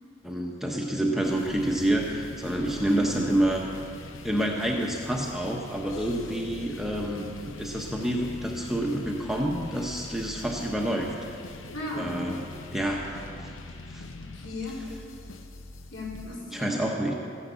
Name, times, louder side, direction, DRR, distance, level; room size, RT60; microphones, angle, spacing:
voice 1, 0.2-3.6 4.2-11.1 11.9-13.1 13.4-13.5 13.9-14.0 16.5-17.1, right 1 dB, ahead, -1 dB, 1.0 m, -28 dB
sound 1, 1.2-16.4, left 2 dB, 80° left, 0.9 m, -43 dB
voice 2, 11.7-12.2 14.2-14.8 15.9-16.8, left 2 dB, 65° left, -4 dB, 3.8 m, -36 dB
14.5 x 10.5 x 7.0 m, 2.6 s
head